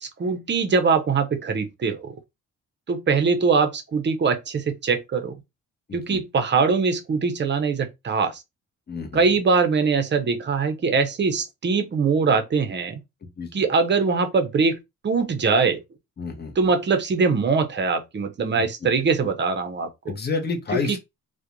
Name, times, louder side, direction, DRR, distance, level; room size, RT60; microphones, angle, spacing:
voice 1, 0.0-2.1 2.9-5.4 5.9-8.4 9.1-13.0 13.5-14.8 15.0-15.8 16.6-19.9 20.9-21.0, right 4 dB, 35° right, 0.5 m, -22 dB
voice 2, 5.9-6.2 8.9-9.2 13.2-13.7 16.2-16.7 18.5-18.9 19.2-19.3 20.1-21.0, left 4 dB, 30° left, 0.7 m, -30 dB
2.4 x 2.1 x 2.9 m
cardioid pair, 110°, 32 cm